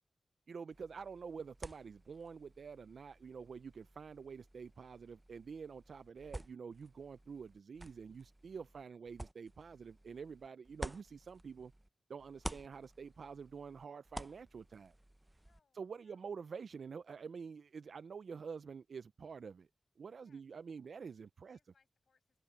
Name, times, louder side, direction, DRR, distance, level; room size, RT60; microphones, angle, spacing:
voice 1, 0.5-11.7 12.1-14.9 15.7-19.7 20.0-21.6, right 5 dB, 65° right, 0.3 m, -48 dB
sound 1, 0.7-11.9 12.2-15.6, right 1 dB, 10° right, 0.5 m, -51 dB
voice 2, 15.4-16.3 20.2-20.4 21.4-22.4, left 5 dB, 60° left, 6.4 m, -77 dB
wide cardioid pair, 130°, 0 cm